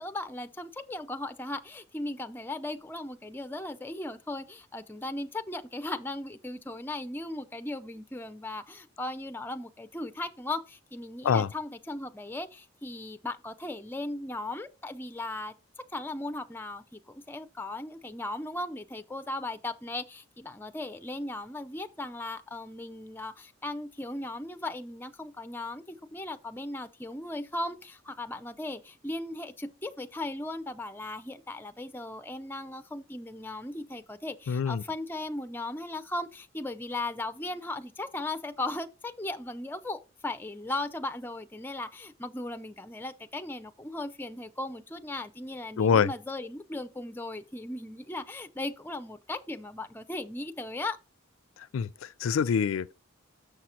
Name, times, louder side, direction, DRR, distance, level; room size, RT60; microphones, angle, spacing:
voice 1, 0.0-15.5 15.9-51.0, left 2 dB, 10° left, 0.4 m, -37 dB
voice 2, 34.5-34.8 45.8-46.1 51.7-52.9, left 6 dB, 85° left, 0.4 m, -25 dB
6.5 x 6.2 x 4.3 m
head